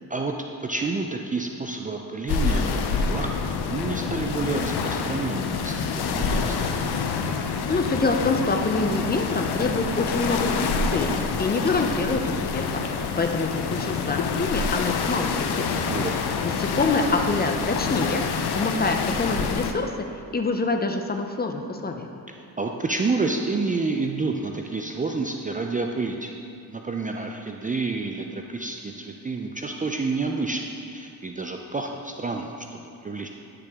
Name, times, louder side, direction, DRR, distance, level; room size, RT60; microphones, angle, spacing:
voice 1, 0.6-6.8 15.9-16.3 22.6-26.3 26.7-33.3, right 3 dB, 20° right, 2 dB, 0.4 m, -29 dB
sound 1, 2.3-19.7, left 5 dB, 75° left, 0.7 m, -27 dB
voice 2, 7.7-15.7 16.4-18.2 18.5-19.9 20.3-22.1, left 3 dB, 25° left, 4 dB, 0.6 m, -26 dB
9.6 x 6.7 x 3.6 m, 2.6 s
cardioid pair, 105°, 40 cm